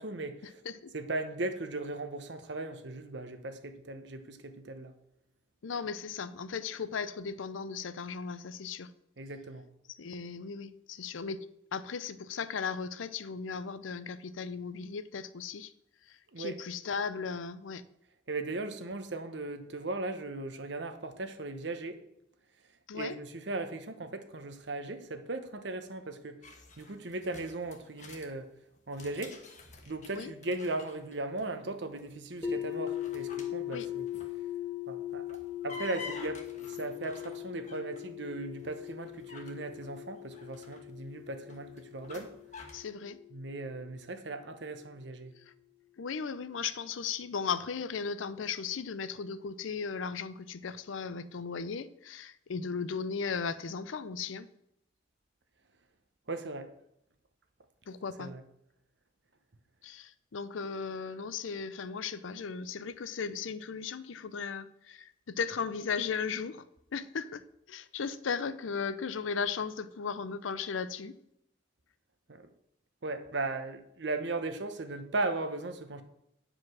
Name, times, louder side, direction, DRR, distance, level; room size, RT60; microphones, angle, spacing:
voice 1, 0.0-0.6 0.9-4.9 9.2-9.7 16.3-16.6 18.3-22.0 22.9-26.4 26.8-28.5 28.9-29.4 29.9-34.1 34.9-42.3 43.3-45.3 56.3-56.7 58.2-58.4 72.3-72.5 73.0-76.0, right 2 dB, 65° right, 9 dB, 0.9 m, -37 dB
voice 2, 5.6-8.9 10.0-11.5 11.7-15.7 16.1-17.8 22.9-23.2 30.1-30.3 33.7-33.9 42.7-43.2 46.0-54.5 57.9-58.3 59.8-66.6 66.9-71.2, left 5 dB, 90° left, 14 dB, 0.5 m, -36 dB
sound 1, 26.4-28.3 28.8-31.4 31.7-32.1 32.7-34.5 35.1-38.1 38.6-42.9, left 4 dB, 40° left, 1.2 m, -49 dB
sound 2, 32.4-44.3, left 11 dB, 10° left, 1.1 m, -40 dB
9.5 x 4.9 x 6.2 m, 0.78 s
head